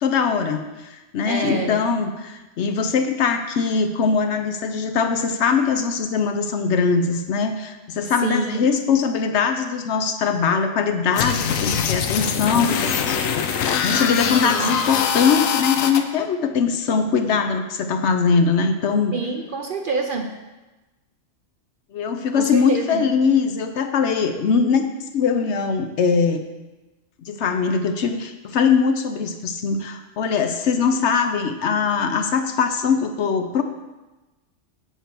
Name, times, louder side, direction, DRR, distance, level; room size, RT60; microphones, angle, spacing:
voice 1, 0.0-19.1 21.9-24.9 25.1-26.5 27.2-33.6, left 5 dB, 65° left, 7 dB, 0.9 m, -21 dB
voice 2, 1.3-2.0 8.2-8.7 14.4-14.8 19.1-20.3 22.3-23.1, right 4 dB, 55° right, 4 dB, 0.6 m, -27 dB
sound 1, 11.1-16.0, left 7 dB, 90° left, 1.0 m, -23 dB
7.5 x 4.5 x 7.0 m, 1.1 s
omnidirectional pair, 1.3 m